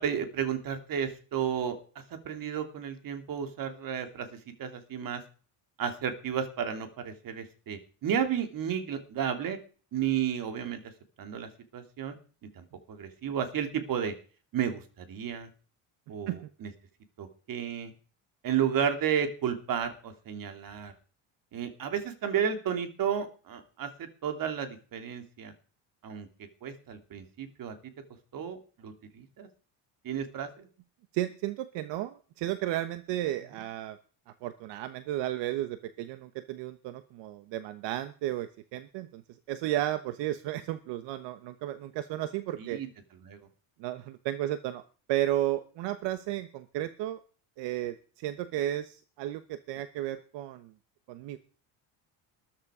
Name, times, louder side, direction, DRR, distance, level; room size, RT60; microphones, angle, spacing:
voice 1, 0.0-1.8 2.2-4.3 4.6-5.2 5.8-9.6 9.9-10.8 11.2-12.2 12.6-14.1 14.5-15.5 16.1-16.7 17.2-17.9 18.4-20.9 21.5-23.9 24.2-25.5 26.0-26.3 26.6-27.7 28.3-29.5 30.0-30.7 33.5-33.6 42.6-42.9 43.2-43.4, right 8 dB, 50° right, 7 dB, 2.9 m, -32 dB
voice 2, 31.1-34.0 34.4-39.2 39.5-42.8 43.8-44.8 45.1-47.2 47.6-50.7 51.1-51.4, right 13 dB, 75° right, 11 dB, 1.2 m, -33 dB
13.5 x 13.0 x 5.0 m, 0.39 s
cardioid pair, 130°, 43 cm